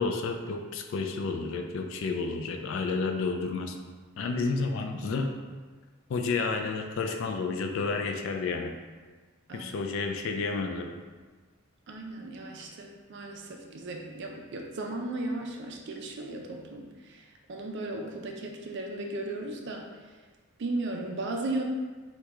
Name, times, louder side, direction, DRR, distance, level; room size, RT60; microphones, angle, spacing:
voice 1, 0.0-3.8 4.2-5.3 6.1-8.7 9.5-10.9, left 4 dB, 60° left, 4 dB, 0.3 m, -30 dB
voice 2, 11.9-20.1 20.6-21.6, right 2 dB, 55° right, 2 dB, 0.4 m, -36 dB
3.0 x 2.2 x 3.5 m, 1.4 s
head